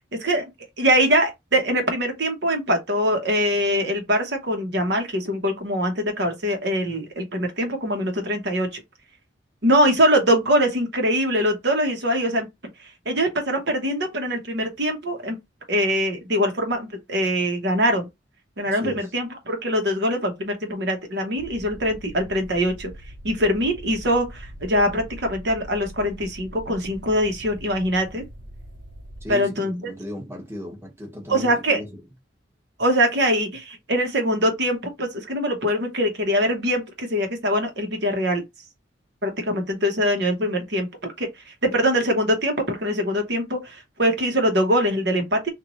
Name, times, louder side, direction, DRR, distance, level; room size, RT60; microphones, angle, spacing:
voice 1, 0.2-0.5 0.8-8.8 9.6-12.5 12.8-15.4 15.7-18.1 18.6-22.9 23.2-28.2 29.3-29.7 31.3-31.8 32.8-38.4 39.2-45.5, equal, 65° right, 1.1 m, -23 dB
voice 2, 18.7-19.1 29.2-32.0, left 1 dB, 15° right, 1.0 m, -36 dB
sound 1, 21.4-29.3, equal, 45° right, 0.5 m, -42 dB
3.0 x 2.6 x 3.9 m
head